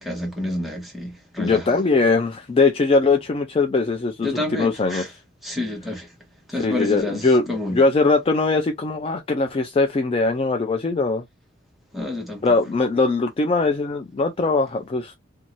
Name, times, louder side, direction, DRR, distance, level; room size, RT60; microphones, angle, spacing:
voice 1, 0.0-1.8 4.2-5.1 5.4-6.1 6.5-7.8 11.9-12.4, left 1 dB, ahead, 0.9 m, -29 dB
voice 2, 1.4-5.0 6.5-7.4 7.7-11.2 12.4-15.1, left 3 dB, 30° left, 0.3 m, -21 dB
2.6 x 2.3 x 2.9 m
head